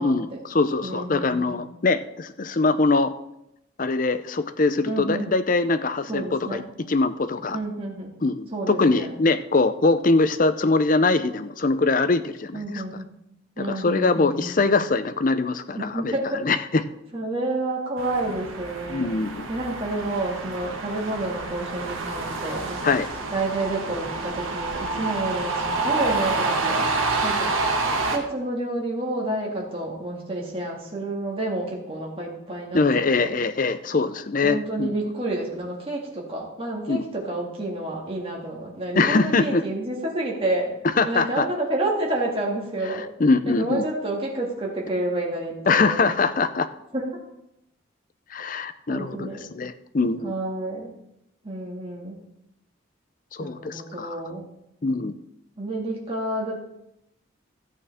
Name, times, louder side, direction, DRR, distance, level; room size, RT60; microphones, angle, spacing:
voice 1, 0.0-3.1 3.8-7.6 8.2-12.8 13.6-16.1 16.4-16.8 18.9-19.5 22.8-23.1 32.7-34.9 36.9-37.0 39.0-39.6 41.0-41.5 43.2-43.8 45.7-46.7 48.3-50.3 53.3-54.2 54.8-55.1, left 3 dB, 40° left, 11 dB, 0.5 m, -23 dB
voice 2, 0.8-1.6 4.8-5.3 6.1-6.6 7.5-8.2 8.5-9.1 12.5-13.1 13.6-14.6 15.7-16.4 17.1-19.1 19.5-22.9 23.3-26.8 27.2-27.6 28.1-33.4 34.4-40.7 41.0-43.1 43.5-46.1 46.9-47.1 48.9-49.5 50.2-50.9 51.4-52.2 53.4-54.4 55.6-56.6, right 2 dB, 25° right, -3 dB, 2.2 m, -29 dB
sound 1, 18.0-28.2, right 3 dB, 85° right, 1.5 m, -28 dB
13.5 x 8.7 x 3.6 m, 0.83 s
head